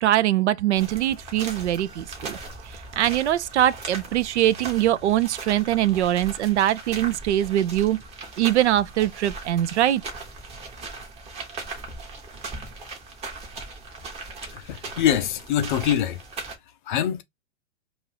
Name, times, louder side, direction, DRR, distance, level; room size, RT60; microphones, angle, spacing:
voice 1, 0.0-2.4 3.0-8.0 8.4-10.0, right 13 dB, 65° right, 0.5 m, -22 dB
sound 1, 0.7-16.5, right 3 dB, 15° right, 0.8 m, -39 dB
voice 2, 14.5-16.2 16.9-17.2, left 10 dB, 40° left, 0.5 m, -24 dB
2.5 x 2.4 x 3.2 m
hypercardioid pair, 125°, 37 cm